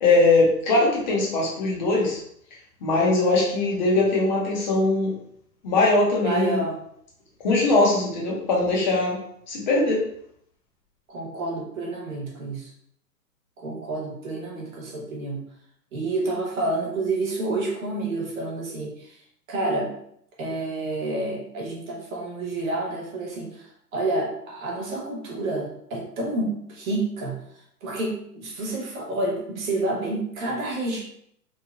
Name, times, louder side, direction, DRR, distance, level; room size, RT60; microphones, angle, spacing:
voice 1, 0.0-2.2 2.8-5.1 5.6-6.6 7.4-9.2 9.5-10.0, left 2 dB, 30° left, -4 dB, 0.6 m, -21 dB
voice 2, 6.2-6.8 11.1-12.7 13.6-15.4 15.9-19.2 19.5-19.9 20.4-31.0, right 2 dB, 55° right, -2 dB, 1.1 m, -29 dB
3.1 x 2.1 x 2.4 m, 0.70 s
hypercardioid pair, 145°, 50 cm